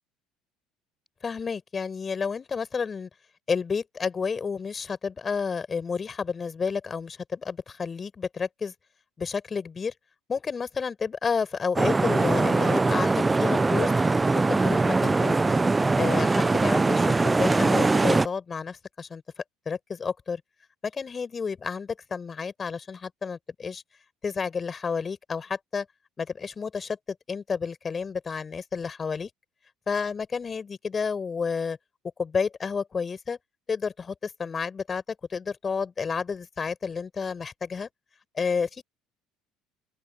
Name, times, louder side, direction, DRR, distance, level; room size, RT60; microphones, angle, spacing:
voice 1, 1.2-3.1 3.5-8.7 9.2-9.9 10.3-13.9 14.3-15.6 15.9-19.2 19.6-20.4 20.8-23.8 24.2-25.8 26.2-27.0 27.3-29.3 29.9-31.8 32.2-33.4 33.7-35.0 35.3-37.9 38.3-38.8, left 5 dB, 30° left, 5.2 m, -30 dB
sound 1, 11.8-18.3, right 3 dB, 20° right, 0.6 m, -22 dB
open air
hypercardioid pair, 75°, 0 cm